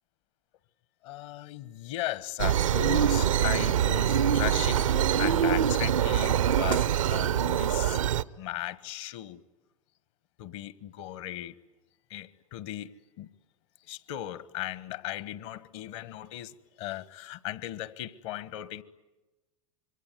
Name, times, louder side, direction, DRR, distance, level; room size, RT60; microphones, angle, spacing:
voice 1, 1.0-8.0 8.4-9.4 10.4-11.5 12.1-12.9 13.2-13.3 13.9-18.8, left 14 dB, 60° left, 1.4 m, -37 dB
sound 1, 2.4-8.2, right 9 dB, 80° right, 0.8 m, -24 dB
26.5 x 23.5 x 9.4 m
hypercardioid pair, 85°, 17 cm